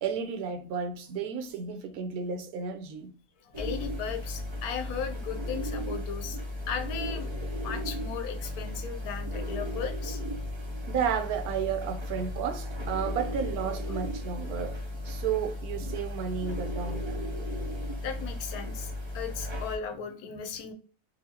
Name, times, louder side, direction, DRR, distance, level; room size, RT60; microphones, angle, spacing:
voice 1, 0.0-3.1 10.8-14.8 15.0-17.3, right 7 dB, 85° right, 1.2 m, -32 dB
voice 2, 3.4-6.4 6.7-7.3 7.6-10.2 18.0-20.7, left 7 dB, 90° left, 1.2 m, -36 dB
sound 1, 3.5-19.8, left 1 dB, 30° right, 0.5 m, -35 dB
3.9 x 2.7 x 2.8 m
omnidirectional pair, 1.5 m